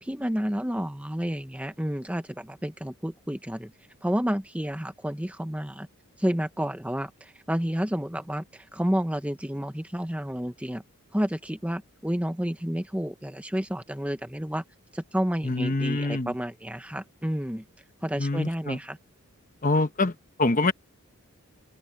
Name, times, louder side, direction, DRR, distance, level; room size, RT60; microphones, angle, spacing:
voice 1, 0.0-3.7 4.0-5.9 6.2-10.8 11.1-14.6 14.9-17.6 18.0-19.0, equal, 5° right, 0.9 m, -30 dB
voice 2, 15.4-16.3 18.2-18.8 19.6-20.7, left 2 dB, 35° left, 1.1 m, -25 dB
head